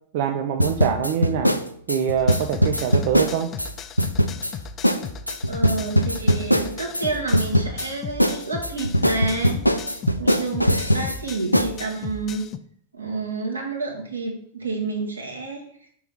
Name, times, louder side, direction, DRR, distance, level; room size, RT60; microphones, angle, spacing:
voice 1, 0.1-1.6 1.9-3.5, right 8 dB, 50° right, 5 dB, 0.5 m, -24 dB
sound 1, 0.6-3.7 4.0-4.5 4.8-5.0 5.3-7.1 7.3-7.9 8.2-11.2 11.5-11.7, equal, 90° left, 0.4 m, -20 dB
sound 2, 2.2-12.6, left 6 dB, 25° left, 0.4 m, -37 dB
voice 2, 5.5-9.6 10.2-12.4 12.9-15.6, right 3 dB, 80° right, 0 dB, 1.6 m, -29 dB
5.6 x 3.7 x 6.0 m, 0.62 s
figure-of-eight pair, 90°, 0 cm